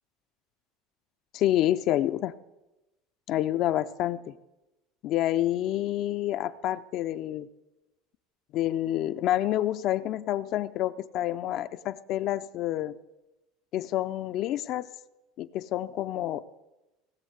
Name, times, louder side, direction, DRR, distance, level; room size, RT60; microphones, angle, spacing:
voice 1, 1.3-2.3 3.3-4.3 5.0-7.5 8.5-12.9 13.7-14.9 15.4-16.5, left 13 dB, 50° left, 11 dB, 0.5 m, -28 dB
18.0 x 7.4 x 8.0 m, 1.0 s
supercardioid pair, 135°, 0 cm